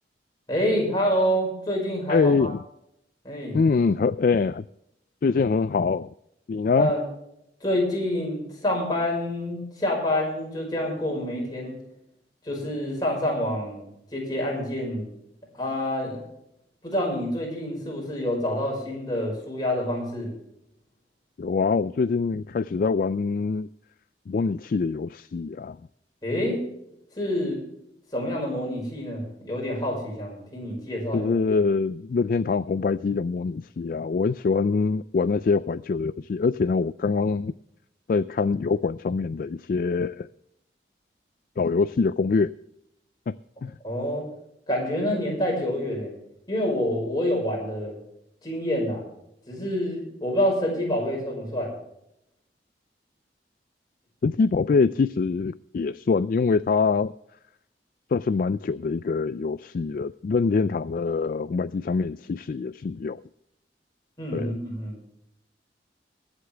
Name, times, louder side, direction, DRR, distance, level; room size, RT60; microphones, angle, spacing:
voice 1, 0.5-2.5 3.2-3.6 6.8-7.0 7.6-11.8 12.4-15.1 15.5-16.2 16.8-20.3 26.2-26.6 27.2-27.6 28.1-31.4 43.8-44.3 44.7-46.1 46.5-48.0 48.4-49.1 49.5-51.7 64.2-65.0, left 1 dB, 25° left, -2 dB, 5.4 m, -27 dB
voice 2, 2.1-2.6 3.5-4.7 5.2-6.1 6.5-6.9 21.4-23.7 24.3-25.8 31.1-37.5 38.1-40.3 41.6-42.5 43.3-43.4 43.6-43.7 54.2-57.1 58.1-63.2 64.3-64.5, left 4 dB, 50° left, 15 dB, 0.3 m, -24 dB
22.5 x 8.2 x 3.4 m, 0.79 s
head